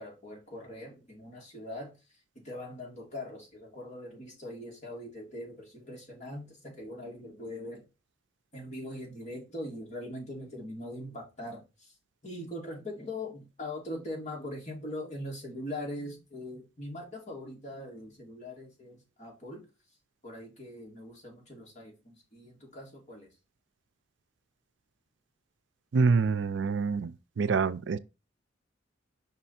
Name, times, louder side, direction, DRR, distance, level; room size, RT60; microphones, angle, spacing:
voice 1, 0.0-7.8 8.5-12.0 12.2-19.6 20.2-23.3, left 1 dB, 40° left, 2.7 m, -41 dB
voice 2, 25.9-28.0, right 4 dB, 70° right, 0.4 m, -26 dB
5.5 x 4.3 x 4.3 m
head